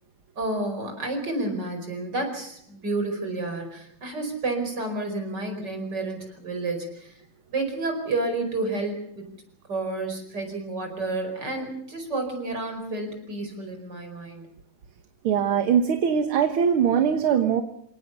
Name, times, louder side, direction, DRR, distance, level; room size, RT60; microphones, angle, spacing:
voice 1, 0.4-7.2 7.5-9.2 9.7-14.5, right 2 dB, 50° right, 5 dB, 5.5 m, -30 dB
voice 2, 15.2-17.6, right 8 dB, 75° right, 7 dB, 2.1 m, -21 dB
28.0 x 18.0 x 7.0 m, 0.71 s
omnidirectional pair, 2.4 m